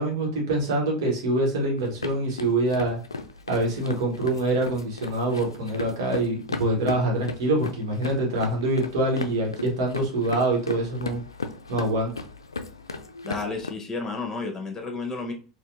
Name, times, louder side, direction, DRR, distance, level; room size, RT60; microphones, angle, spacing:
voice 1, 0.0-3.0 3.5-11.2 11.7-12.1, right 2 dB, 70° right, 0 dB, 1.4 m, -25 dB
sound 1, 1.8-13.7, left 3 dB, 90° left, 0.4 m, -36 dB
voice 2, 13.2-15.3, left 3 dB, 20° left, 3 dB, 1.3 m, -31 dB
4.3 x 2.6 x 2.8 m, 0.37 s
figure-of-eight pair, 80°, 2 cm